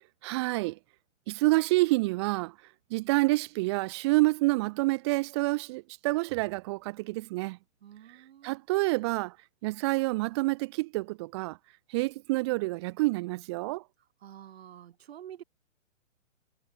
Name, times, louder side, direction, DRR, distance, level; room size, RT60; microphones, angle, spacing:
voice 1, 0.2-0.8 1.3-2.5 2.9-7.6 8.4-9.3 9.6-11.6 11.9-13.8, right 22 dB, 20° right, 1.0 m, -28 dB
voice 2, 7.8-8.6 14.2-15.4, right 10 dB, 50° right, 2.8 m, -48 dB
hypercardioid pair, 160°, 38 cm